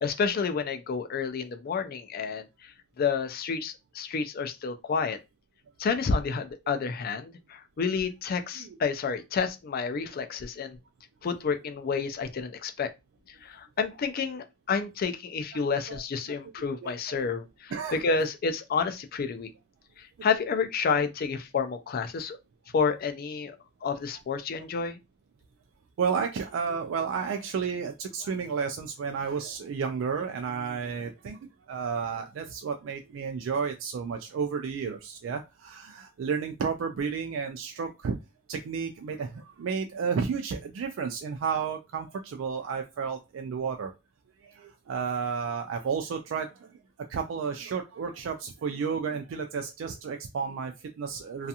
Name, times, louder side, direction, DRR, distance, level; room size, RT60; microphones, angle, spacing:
voice 1, 0.0-5.2 5.8-10.8 11.2-12.9 13.4-19.5 20.0-22.4 22.7-23.6 23.8-25.0, left 5 dB, 50° left, 0.4 m, -30 dB
voice 2, 16.8-17.3 17.7-18.0 20.2-20.3 26.0-31.4 31.7-38.2 38.5-43.9 44.4-46.7 47.1-51.5, right 6 dB, 75° right, 0.3 m, -32 dB
2.4 x 2.3 x 2.7 m
head